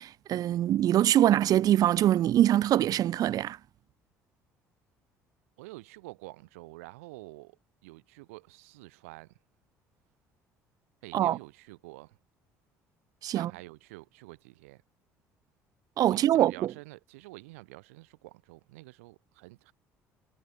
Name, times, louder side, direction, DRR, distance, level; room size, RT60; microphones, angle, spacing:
voice 1, 0.0-3.6 11.1-11.4 13.2-13.5 16.0-16.7, right 12 dB, 55° right, 0.7 m, -24 dB
voice 2, 5.6-9.4 11.0-12.2 13.3-14.8 16.1-19.7, right 22 dB, 80° right, 3.3 m, -48 dB
hypercardioid pair, 60°, 8 cm